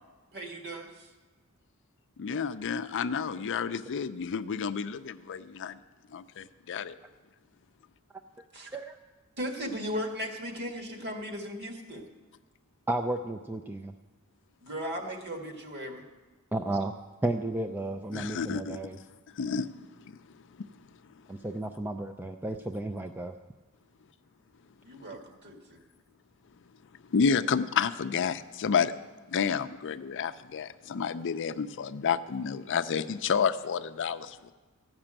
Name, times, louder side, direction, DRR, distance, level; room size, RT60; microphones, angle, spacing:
voice 1, 0.3-1.1 8.5-8.7 9.4-12.1 14.6-16.1 24.8-25.8, equal, 50° right, 3 dB, 1.8 m, -37 dB
voice 2, 2.2-5.8 6.1-7.0 18.1-18.8 19.4-19.7 27.1-28.9 29.3-34.5, left 6 dB, 55° left, 11 dB, 0.5 m, -30 dB
voice 3, 12.9-13.9 16.5-16.9 17.2-19.0 21.3-23.3, right 2 dB, 10° right, 5 dB, 0.4 m, -33 dB
14.0 x 6.0 x 8.8 m, 1.3 s
head